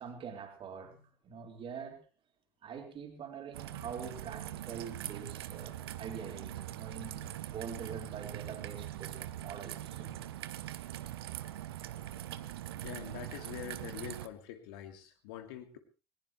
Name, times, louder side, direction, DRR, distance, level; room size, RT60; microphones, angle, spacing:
voice 1, 0.0-2.0 2.6-10.2 11.7-11.9 13.3-13.4, right 6 dB, 40° right, 4.6 m, -45 dB
Raindrop / Trickle dribble, 3.5-14.3, right 13 dB, 70° right, 1.0 m, -42 dB
voice 2, 12.8-15.8, left 10 dB, 65° left, 2.6 m, -45 dB
20.5 x 20.0 x 3.2 m
figure-of-eight pair, 65°, 13 cm